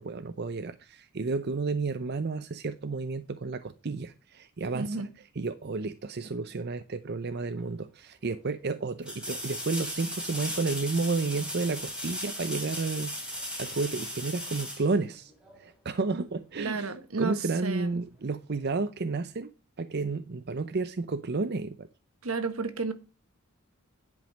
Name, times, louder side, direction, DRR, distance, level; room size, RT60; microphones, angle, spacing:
voice 1, 0.0-5.1 5.4-15.3 15.6-16.9 17.2-19.5 19.8-21.9, right 3 dB, 50° right, 0.6 m, -31 dB
voice 2, 4.7-5.1 16.6-17.9 22.2-22.9, right 4 dB, 75° right, 1.4 m, -32 dB
sound 1, 7.6-7.7 9.0-15.6 18.5-18.6, equal, 5° right, 3.2 m, -37 dB
10.5 x 5.3 x 6.3 m
head